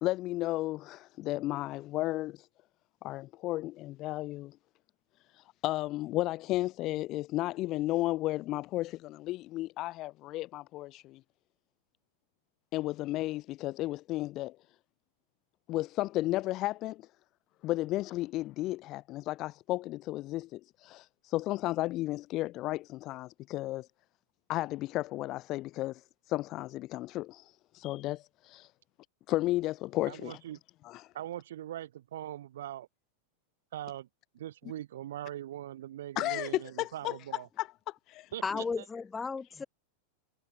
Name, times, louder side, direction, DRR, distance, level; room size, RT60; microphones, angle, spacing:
voice 1, 0.0-2.5 3.0-4.6 5.3-11.2 12.7-14.6 15.7-17.1 17.6-23.9 24.5-28.7 29.3-30.4 30.8-31.1 36.2-38.3, left 17 dB, 35° left, 0.6 m, -34 dB
voice 2, 30.1-30.6 31.1-32.9 33.7-34.1 34.3-37.5 38.3-38.6, right 12 dB, 60° right, 2.5 m, -41 dB
voice 3, 38.4-39.6, left 4 dB, 15° left, 5.8 m, -34 dB
figure-of-eight pair, 90°, 0 cm